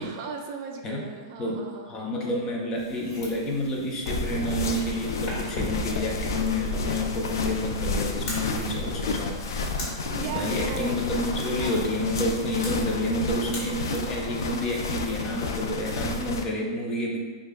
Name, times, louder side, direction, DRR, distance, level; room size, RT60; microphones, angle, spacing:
voice 1, 0.0-1.9 8.8-9.0 10.1-11.8, right 5 dB, 50° right, 3 dB, 0.4 m, -37 dB
voice 2, 1.9-9.7 10.2-17.2, left 1 dB, 25° left, -1 dB, 0.7 m, -29 dB
sound 1, 2.8-15.5, left 1 dB, 45° left, 1.3 m, -42 dB
sound 2, 4.1-16.4, left 3 dB, 85° left, 0.4 m, -31 dB
6.1 x 2.3 x 2.2 m, 1.4 s
hypercardioid pair, 135°, 2 cm